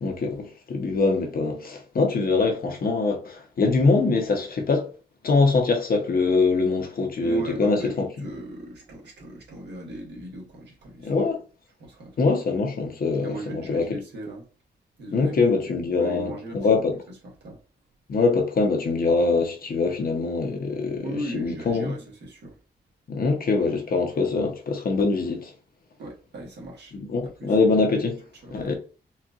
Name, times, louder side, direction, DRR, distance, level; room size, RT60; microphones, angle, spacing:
voice 1, 0.0-4.9 5.2-8.1 11.0-11.4 12.2-13.9 15.1-16.9 18.1-21.9 23.1-25.5 26.9-28.2 28.5-28.7, left 3 dB, 55° left, 1.0 m, -23 dB
voice 2, 7.2-11.3 11.8-12.3 13.2-14.4 15.0-15.6 16.0-16.7 17.2-17.6 21.0-22.6 26.0-26.9 27.2-27.6 28.4-28.7, right 1 dB, 75° right, 1.5 m, -37 dB
4.2 x 2.5 x 2.5 m
wide cardioid pair, 110°, 18 cm